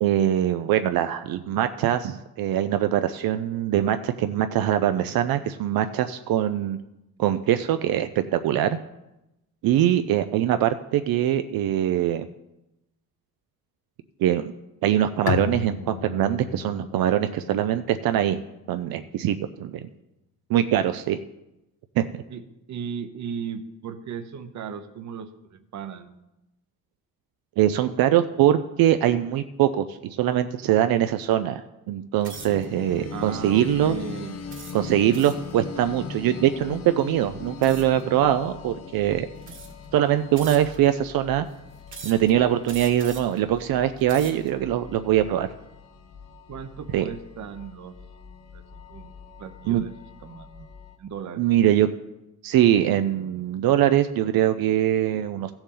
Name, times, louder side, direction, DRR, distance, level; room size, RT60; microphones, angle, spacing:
voice 1, 0.0-6.8 7.2-8.8 9.6-12.3 14.2-14.5 14.8-18.4 18.7-19.9 20.5-21.2 22.0-22.1 27.6-34.0 34.7-39.3 39.9-41.5 42.0-45.5 46.9-47.1 49.7-49.8 51.4-51.9 52.4-55.5, right 11 dB, 80° right, 9 dB, 0.5 m, -22 dB
Bowed string instrument, 15.3-18.8, left 10 dB, 80° left, 0.5 m, -34 dB
voice 2, 22.7-26.2 33.1-34.3 35.1-35.3 46.5-48.0 48.5-49.9 50.2-50.7 51.0-51.4, right 6 dB, 55° right, 11 dB, 0.8 m, -36 dB
sound 1, 32.2-32.7 33.3-33.6 34.5-35.5 37.6-38.0 38.9-39.0 39.4-39.9 40.4-40.9 41.9-42.3 42.7-43.4 43.9-44.5, right 4 dB, 35° right, 1.3 m, -42 dB
sound 2, 32.3-51.0, left 5 dB, 45° left, 0.9 m, -41 dB
15.5 x 7.1 x 3.8 m, 0.93 s
cardioid pair, 170°, 35 cm